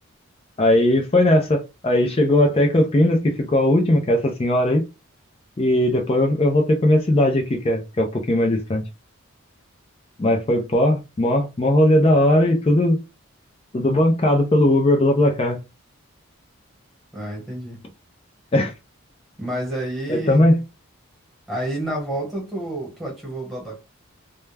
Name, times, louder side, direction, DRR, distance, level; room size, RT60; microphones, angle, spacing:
voice 1, 0.6-4.9 5.6-8.8 10.2-13.0 13.7-15.6 18.5-18.7 20.1-20.6, left 1 dB, 25° left, 0.4 m, -18 dB
voice 2, 17.1-17.8 19.4-20.5 21.5-23.8, right 1 dB, ahead, 1.1 m, -29 dB
2.2 x 2.1 x 3.2 m
head